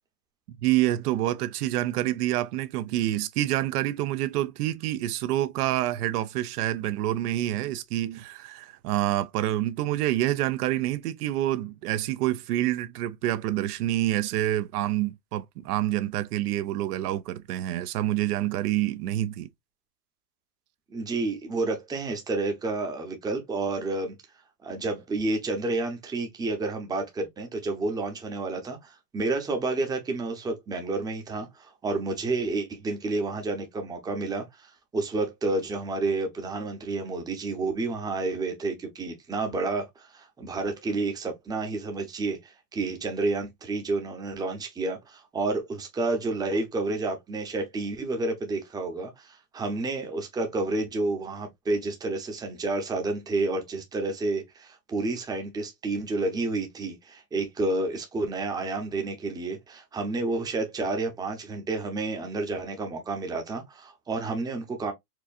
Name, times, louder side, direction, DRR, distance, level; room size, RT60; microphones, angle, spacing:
voice 1, 0.5-19.5, right 14 dB, 70° right, 0.6 m, -27 dB
voice 2, 20.9-24.1 24.6-64.9, right 3 dB, 10° right, 0.7 m, -30 dB
4.6 x 2.5 x 2.4 m
supercardioid pair, 140°, 48 cm